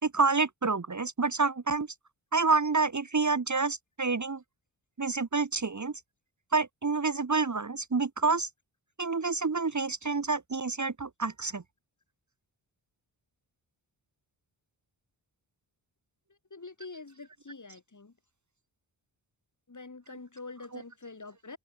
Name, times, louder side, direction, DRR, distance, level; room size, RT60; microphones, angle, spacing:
voice 1, 0.0-1.9 2.3-4.4 5.0-5.9 6.5-8.5 9.0-11.6 20.7-20.8, right 4 dB, 40° right, 1.9 m, -28 dB
voice 2, 16.3-18.1 19.7-21.6, left 3 dB, 40° left, 7.5 m, -46 dB
wide cardioid pair, 115°, 46 cm